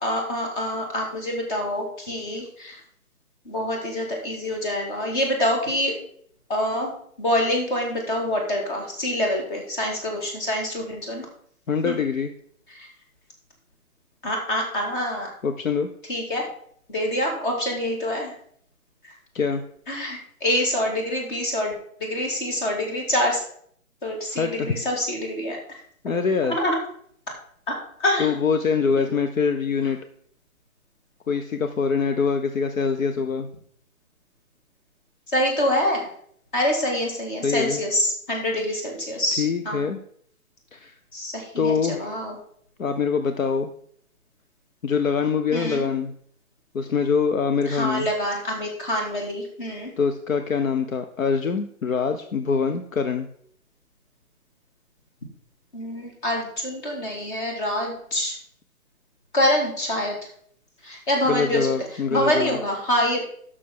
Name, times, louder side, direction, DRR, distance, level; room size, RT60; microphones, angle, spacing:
voice 1, 0.0-2.8 3.4-5.9 6.5-6.9 7.2-11.3 11.8-12.0 12.7-12.9 14.2-15.3 16.1-16.5 16.9-18.3 19.9-21.7 22.0-23.4 24.0-25.8 26.5-26.8 27.7-28.4 29.0-29.1 29.8-29.9 35.3-36.1 36.5-39.9 41.1-42.4 45.5-45.9 47.7-49.9 55.7-58.4 59.3-60.1 60.8-61.7 62.1-63.2, left 1 dB, 35° left, 1 dB, 2.8 m, -26 dB
voice 2, 11.7-12.3 15.4-15.9 19.3-19.6 24.3-24.7 26.0-26.6 28.2-30.0 31.3-33.5 37.4-37.8 39.4-40.0 40.7-40.9 41.6-42.1 42.8-43.7 44.8-46.1 46.7-48.1 50.0-53.3 61.3-62.6, left 5 dB, 70° left, 8 dB, 0.8 m, -24 dB
12.0 x 6.3 x 3.8 m, 0.63 s
figure-of-eight pair, 150°, 42 cm